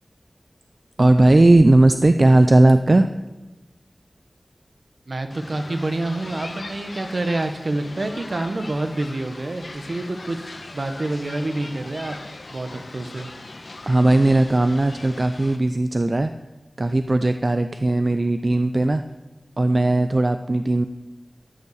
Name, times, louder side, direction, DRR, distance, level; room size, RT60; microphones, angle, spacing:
voice 1, 1.0-3.1 13.9-16.3 16.8-19.0 19.6-20.9, right 2 dB, 40° right, 9 dB, 0.5 m, -17 dB
voice 2, 5.1-12.2 12.5-13.3, right 2 dB, 60° right, 7 dB, 1.2 m, -27 dB
sound 1, 5.3-15.6, left 2 dB, 65° left, 1.4 m, -40 dB
13.5 x 6.8 x 7.2 m, 1.1 s
wide cardioid pair, 75°, 0 cm